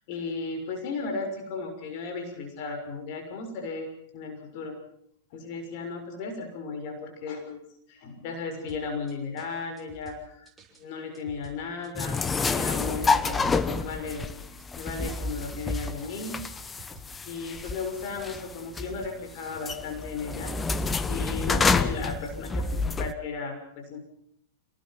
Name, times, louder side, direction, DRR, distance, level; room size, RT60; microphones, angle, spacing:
voice 1, 0.1-3.9 4.1-4.8 5.3-10.5 10.8-16.4 17.3-20.5 21.1-24.0, left 4 dB, 55° left, 5 dB, 6.4 m, -35 dB
sound 1, 8.7-19.7, right 2 dB, 15° right, 6.6 m, -53 dB
sound 2, 12.0-23.1, left 4 dB, 15° left, 1.3 m, -29 dB
28.0 x 19.0 x 6.0 m, 0.66 s
hypercardioid pair, 105°, 0 cm